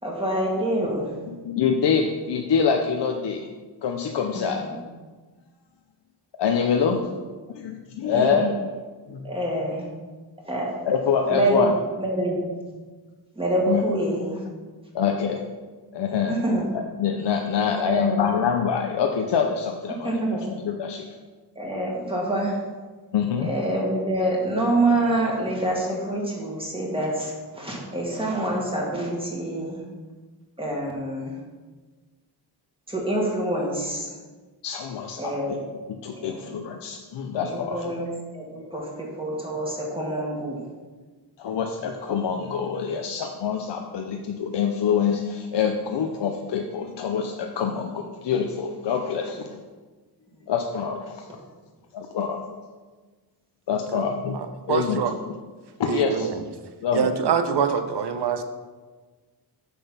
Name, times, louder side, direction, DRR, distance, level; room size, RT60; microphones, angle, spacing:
voice 1, 0.0-1.2 4.3-4.8 8.1-8.6 9.2-9.9 10.4-10.7 11.3-12.4 13.4-14.5 16.3-16.7 17.8-18.2 20.0-20.4 21.6-22.6 23.4-29.8 30.6-31.4 32.9-34.1 35.2-35.5 36.1-36.4 37.4-40.7, right 1 dB, 15° right, -3 dB, 1.9 m, -26 dB
voice 2, 1.3-3.5 3.8-4.7 6.4-7.0 7.5-8.5 9.1-9.2 10.8-11.7 13.7-13.8 14.9-15.4 15.9-16.4 16.7-21.0 23.1-23.5 34.6-35.6 35.9-37.9 41.4-49.6 50.5-51.3 51.9-52.4 53.7-54.4 54.7-55.0 55.8-56.3 56.8-57.1, left 7 dB, 75° left, 3 dB, 0.7 m, -25 dB
voice 3, 54.3-55.1 55.9-56.4 56.9-58.4, right 7 dB, 70° right, 8 dB, 0.8 m, -25 dB
6.9 x 6.2 x 5.7 m, 1.4 s
wide cardioid pair, 140°, 42 cm